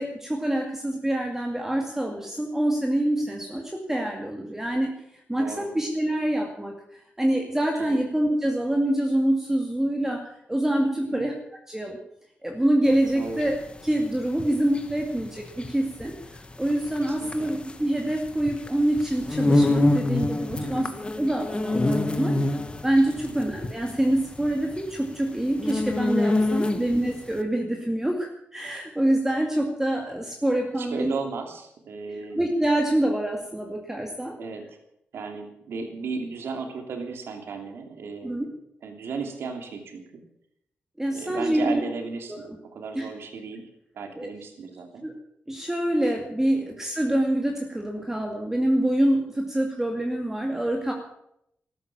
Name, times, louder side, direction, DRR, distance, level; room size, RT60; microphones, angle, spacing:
voice 1, 0.0-4.9 5.3-11.3 11.7-12.0 12.4-22.3 22.8-31.1 32.3-34.4 38.2-38.4 41.0-41.8 42.3-42.4 42.9-43.1 44.2-44.3 45.0-45.1 45.5-50.9, right 1 dB, 10° right, 1 dB, 2.3 m, -26 dB
voice 2, 5.4-5.7 7.7-8.0 11.1-11.2 13.1-13.5 17.0-17.5 20.6-20.9 23.2-23.3 26.7-26.8 30.8-32.4 34.4-34.8 35.1-38.5 38.8-40.2 41.1-45.0, right 4 dB, 80° right, 4 dB, 2.9 m, -35 dB
sound 1, 12.9-27.1, left 2 dB, 25° left, 1.6 m, -26 dB
13.5 x 12.5 x 7.2 m, 0.76 s
cardioid pair, 90°, 4 cm